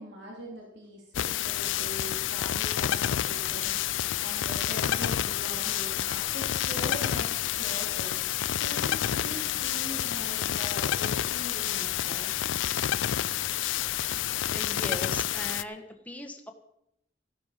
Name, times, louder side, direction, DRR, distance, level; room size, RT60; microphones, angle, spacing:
voice 1, 0.0-12.4, right 1 dB, 65° right, -2 dB, 3.2 m, -42 dB
sound 1, 1.1-15.6, left 11 dB, 85° left, 0.4 m, -29 dB
voice 2, 14.5-16.5, left 2 dB, 10° left, 4 dB, 1.4 m, -39 dB
14.0 x 11.5 x 5.0 m, 0.79 s
head